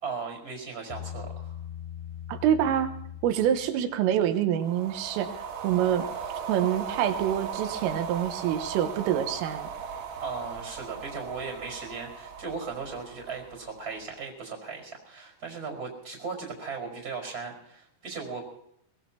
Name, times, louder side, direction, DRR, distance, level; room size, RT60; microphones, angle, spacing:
voice 1, 0.0-1.6 10.2-18.6, right 5 dB, 20° right, 2 dB, 4.9 m, -37 dB
Bass guitar, 0.9-4.3, left 10 dB, 75° left, 3.9 m, -41 dB
voice 2, 2.3-2.9 3.2-6.1 6.5-9.7, right 10 dB, 85° right, 8 dB, 3.7 m, -26 dB
sound 1, 4.5-14.0, right 7 dB, 65° right, 4.1 m, -37 dB
22.5 x 19.5 x 2.9 m, 0.71 s
omnidirectional pair, 6.0 m